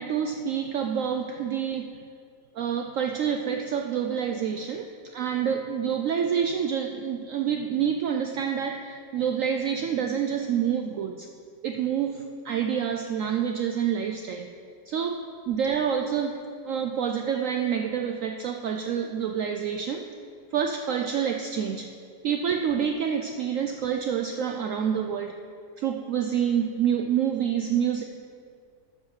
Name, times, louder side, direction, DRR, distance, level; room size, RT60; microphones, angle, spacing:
voice 1, 0.0-2.0 2.5-11.3 11.6-14.5 14.9-16.4 16.6-20.0 20.5-21.9 22.2-25.4 25.8-28.0, right 8 dB, 70° right, 4 dB, 0.8 m, -27 dB
11.5 x 4.8 x 7.1 m, 2.2 s
omnidirectional pair, 1.8 m